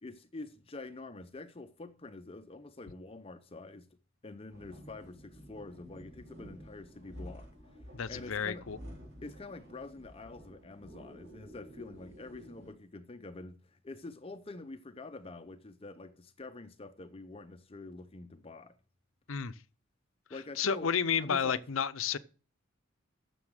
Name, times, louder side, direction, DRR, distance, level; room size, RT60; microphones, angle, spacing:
voice 1, 0.0-3.9 4.2-7.5 8.0-8.6 9.2-18.8 20.3-20.9 21.2-21.6, left 3 dB, 30° left, 0.7 m, -46 dB
sound 1, 4.5-12.7, equal, 65° right, 5.9 m, -51 dB
voice 2, 7.9-8.8 19.3-19.5 20.6-22.2, left 7 dB, 75° left, 0.7 m, -31 dB
9.6 x 7.0 x 6.5 m
head